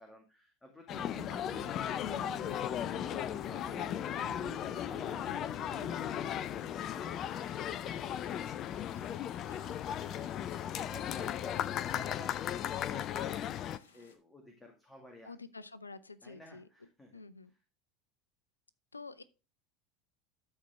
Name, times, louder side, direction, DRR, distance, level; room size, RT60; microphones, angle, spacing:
voice 1, 0.0-4.3 4.7-13.5 13.9-15.3 16.2-17.2, left 1 dB, 10° left, 2.1 m, -54 dB
sound 1, 0.9-13.8, left 10 dB, 40° left, 0.5 m, -36 dB
sound 2, 0.9-8.4, right 15 dB, 65° right, 0.4 m, -53 dB
sound 3, 6.6-14.2, left 5 dB, 75° left, 1.2 m, -63 dB
voice 2, 15.3-16.6 17.1-17.5 18.9-19.2, left 4 dB, 90° left, 0.5 m, -48 dB
13.0 x 4.4 x 3.5 m
figure-of-eight pair, 75°, 0 cm